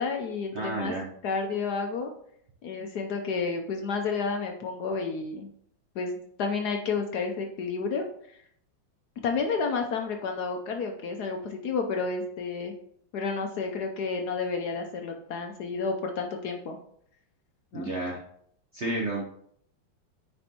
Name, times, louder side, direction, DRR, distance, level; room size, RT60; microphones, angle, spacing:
voice 1, 0.0-0.9 1.2-2.1 2.6-5.5 6.0-8.4 9.2-12.7 13.1-16.8 17.7-17.9, left 4 dB, 65° left, 4 dB, 1.0 m, -31 dB
voice 2, 0.5-1.1 17.7-18.2 18.7-19.3, right 2 dB, 55° right, -2 dB, 0.8 m, -31 dB
9.3 x 4.5 x 2.9 m, 0.67 s
omnidirectional pair, 2.2 m